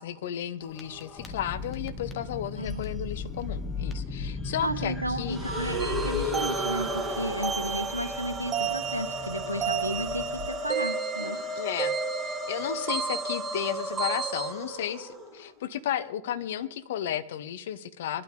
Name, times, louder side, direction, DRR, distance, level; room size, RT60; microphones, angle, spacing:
voice 1, 0.0-5.4 11.6-18.2, left 10 dB, 55° left, 13 dB, 0.8 m, -33 dB
sound 1, 0.6-10.5, left 4 dB, 15° left, 1.6 m, -37 dB
voice 2, 2.6-2.9 4.6-11.4, equal, 85° right, 10 dB, 1.1 m, -33 dB
sound 2, 5.2-15.5, equal, 5° right, 2.8 m, -34 dB
sound 3, 5.8-14.5, right 7 dB, 25° right, 0.8 m, -33 dB
21.5 x 12.0 x 3.4 m, 0.82 s
figure-of-eight pair, 90°, 0 cm